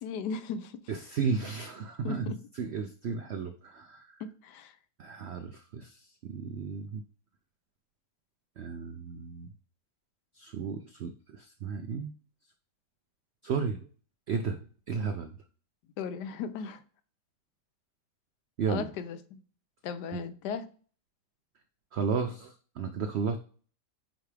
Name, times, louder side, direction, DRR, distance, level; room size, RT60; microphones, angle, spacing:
voice 1, 0.0-0.8 2.0-2.4 4.2-4.7 16.0-16.8 18.7-19.4 19.8-20.7, left 6 dB, 80° left, 1.2 m, -36 dB
voice 2, 0.9-4.1 5.0-7.0 8.6-9.5 10.4-12.1 13.4-13.9 14.3-15.3 18.6-18.9 20.1-20.2 21.9-23.4, right 5 dB, 85° right, 0.5 m, -34 dB
9.2 x 3.4 x 3.3 m
omnidirectional pair, 1.8 m